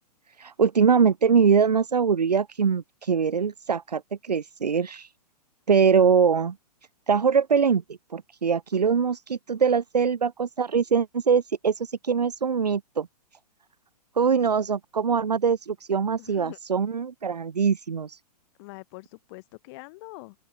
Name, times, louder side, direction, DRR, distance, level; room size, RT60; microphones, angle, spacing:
voice 1, 0.4-5.1 5.7-6.5 7.1-7.8 8.1-13.1 14.2-18.2, right 6 dB, 80° right, 0.8 m, -23 dB
voice 2, 16.2-16.8 18.6-20.3, left 25 dB, 40° left, 4.9 m, -44 dB
open air
figure-of-eight pair, 115°, 21 cm